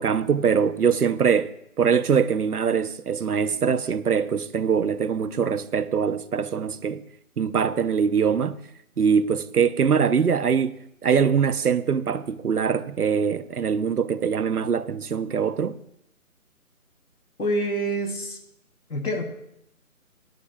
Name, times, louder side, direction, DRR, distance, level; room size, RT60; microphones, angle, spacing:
voice 1, 0.0-1.5 1.8-7.0 7.4-8.6 9.0-15.8, right 6 dB, 90° right, 0.9 m, -23 dB
voice 2, 17.4-18.4 18.9-19.2, right 1 dB, 80° left, 3.2 m, -26 dB
24.0 x 10.5 x 2.4 m
hypercardioid pair, 170°, 44 cm